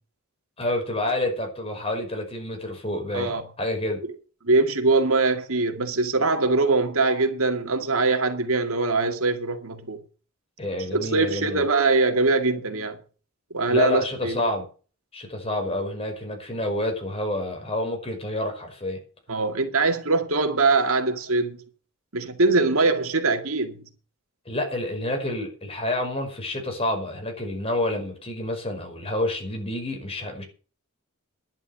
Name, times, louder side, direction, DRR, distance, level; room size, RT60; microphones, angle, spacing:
voice 1, 0.6-4.0 10.6-11.6 13.7-14.7 15.1-19.0 24.5-30.4, left 1 dB, 25° left, 5.3 m, -28 dB
voice 2, 4.4-10.0 10.9-13.0 13.5-14.4 19.3-21.6 22.1-23.8, right 3 dB, 75° right, 2.2 m, -22 dB
11.0 x 11.0 x 6.7 m
head